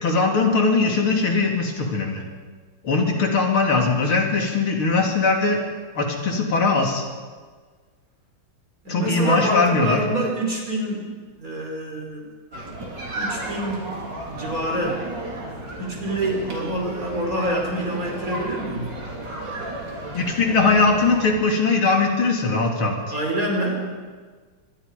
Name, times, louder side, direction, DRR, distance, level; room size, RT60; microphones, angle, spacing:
voice 1, 0.0-2.2 2.8-5.6 6.0-7.0 8.9-10.0 20.1-23.0, left 3 dB, 75° left, 2 dB, 3.8 m, -20 dB
voice 2, 8.8-12.3 13.1-13.9 14.3-15.0 15.8-18.9 23.1-23.8, right 1 dB, 40° right, 0 dB, 5.3 m, -26 dB
sound 1, 12.5-21.4, right 2 dB, 55° right, 4.3 m, -34 dB
25.5 x 21.0 x 5.3 m, 1.5 s
omnidirectional pair, 2.3 m